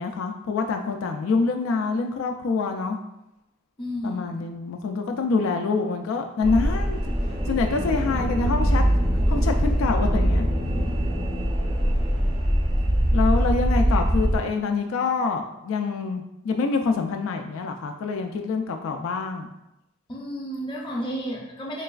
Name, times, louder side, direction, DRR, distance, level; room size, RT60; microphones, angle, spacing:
voice 1, 0.0-3.0 4.0-7.0 7.5-8.8 9.3-10.5 13.1-19.5, left 4 dB, 80° left, 4 dB, 0.3 m, -26 dB
voice 2, 3.8-4.4 13.9-14.0 20.1-21.8, equal, 25° left, -2 dB, 0.6 m, -32 dB
sound 1, 6.4-14.4, equal, 25° right, 0.4 m, -22 dB
3.9 x 3.2 x 2.3 m, 0.88 s
head